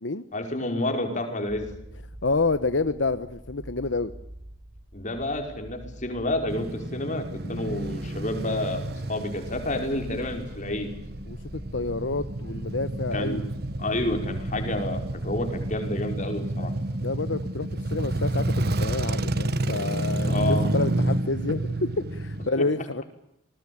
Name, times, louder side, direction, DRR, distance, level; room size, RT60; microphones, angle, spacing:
voice 1, 0.3-1.7 4.9-10.9 13.1-13.5 13.8-16.7 20.3-20.7 22.6-22.7, left 1 dB, 40° left, 5 dB, 5.4 m, -29 dB
sound 1, 1.5-15.9, right 1 dB, 15° right, 4.8 m, -44 dB
voice 2, 2.2-4.1 7.4-7.8 11.3-13.4 17.0-23.0, left 3 dB, 80° left, 12 dB, 1.1 m, -29 dB
Male speech man speaking / Motorcycle / Idling, 6.5-22.5, right 1 dB, 60° right, 1.5 m, -30 dB
28.5 x 20.5 x 8.8 m, 0.81 s
head